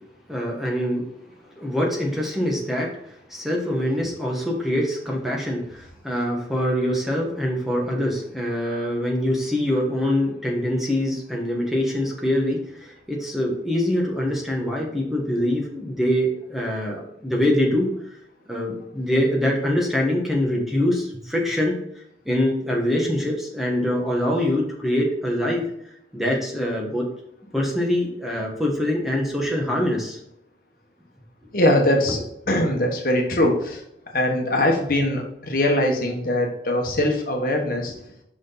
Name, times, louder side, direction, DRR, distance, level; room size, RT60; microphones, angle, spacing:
voice 1, 0.3-1.0 1.6-2.9 3.3-17.9 18.5-21.7 22.2-25.6 26.1-27.0 27.5-30.2, left 1 dB, ahead, -2 dB, 1.4 m, -24 dB
voice 2, 31.5-33.8 34.1-38.0, left 1 dB, 55° left, 1 dB, 1.4 m, -22 dB
6.3 x 6.1 x 4.0 m, 0.76 s
head